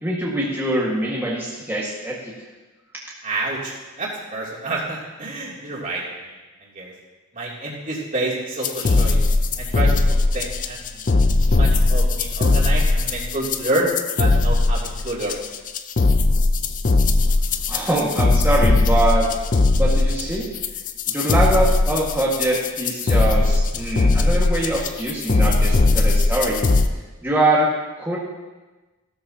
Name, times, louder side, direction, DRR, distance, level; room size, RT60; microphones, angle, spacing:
voice 1, 0.0-2.3 17.7-19.3 19.8-20.5 21.1-26.6 27.2-27.7 28.0-28.2, right 1 dB, 10° right, -6 dB, 1.8 m, -23 dB
voice 2, 3.2-3.7 4.0-6.3 6.7-6.9 7.3-9.2 9.6-9.9 10.3-11.1 11.5-13.9 14.2-15.3, right 2 dB, 35° right, -5 dB, 3.0 m, -28 dB
sound 1, 8.6-26.9, left 2 dB, 35° left, 0.5 m, -19 dB
16.0 x 12.5 x 2.9 m, 1.2 s
head